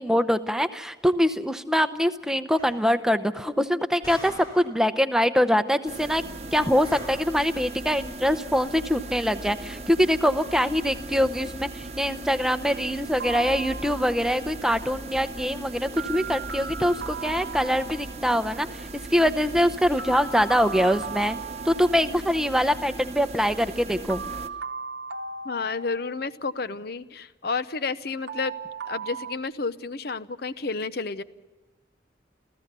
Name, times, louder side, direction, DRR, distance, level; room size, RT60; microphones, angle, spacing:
voice 1, 0.0-6.2 6.5-21.4 21.6-24.2, equal, 5° right, 9 dB, 0.7 m, -24 dB
sound 1, 2.6-2.9 4.0-4.8 6.8-7.4, equal, 25° left, 5.0 m, -42 dB
sound 2, 5.9-24.5, right 2 dB, 35° right, 0.9 m, -38 dB
sound 3, 13.2-14.3 16.0-18.3 20.0-22.3 24.1-26.4 28.3-29.3, right 5 dB, 65° right, 0.9 m, -37 dB
voice 2, 25.4-28.5 28.9-31.2, left 4 dB, 55° left, 14 dB, 0.7 m, -31 dB
28.5 x 14.5 x 6.8 m, 1.2 s
head